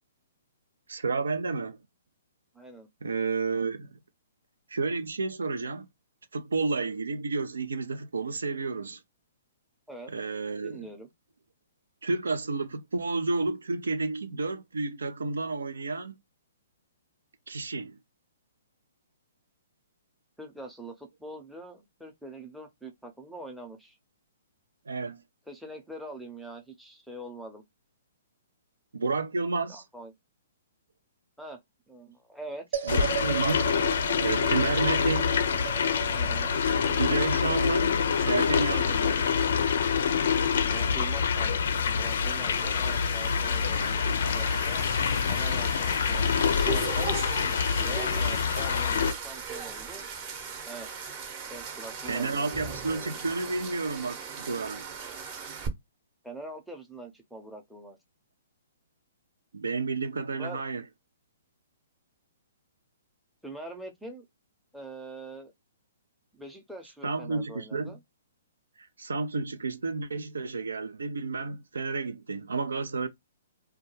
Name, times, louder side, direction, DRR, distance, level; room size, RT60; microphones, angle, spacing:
voice 1, 0.9-1.8 3.0-4.0 4.7-5.9 6.3-9.0 10.1-10.8 12.0-16.2 17.5-18.0 24.9-25.2 28.9-29.8 32.9-33.7 34.2-35.3 36.8-39.2 52.1-54.8 59.5-60.8 67.0-68.0 68.8-73.1, right 3 dB, 80° right, 0.4 m, -31 dB
voice 2, 2.5-2.9 9.9-10.1 10.6-11.1 20.4-24.0 25.5-27.6 29.7-30.1 31.4-31.6 31.9-33.0 36.1-36.6 38.8-39.1 40.6-44.9 45.3-47.2 47.8-50.1 50.7-50.9 51.5-53.1 56.2-58.0 60.4-60.6 63.4-64.2 64.7-65.5 66.3-68.0, right 1 dB, ahead, 0.6 m, -43 dB
sound 1, 32.7-43.2, right 9 dB, 65° right, 1.0 m, -39 dB
sound 2, 32.9-49.1, left 6 dB, 65° left, 0.4 m, -26 dB
sound 3, 42.5-55.7, right 6 dB, 35° right, 0.8 m, -39 dB
2.2 x 2.2 x 3.0 m
hypercardioid pair, 130°, 0 cm